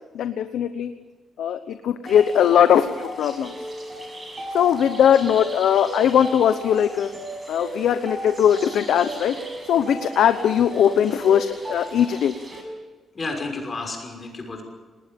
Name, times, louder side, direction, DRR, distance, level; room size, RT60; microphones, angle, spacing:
voice 1, 0.1-0.9 1.4-3.5 4.5-7.1 7.5-9.4 9.7-12.3, left 9 dB, 80° left, 9 dB, 1.0 m, -20 dB
sound 1, 2.1-12.6, right 1 dB, 20° right, 6.3 m, -36 dB
voice 2, 13.1-14.6, left 3 dB, 30° left, 3 dB, 6.0 m, -31 dB
28.5 x 20.0 x 5.4 m, 1.4 s
cardioid pair, 145°, 0 cm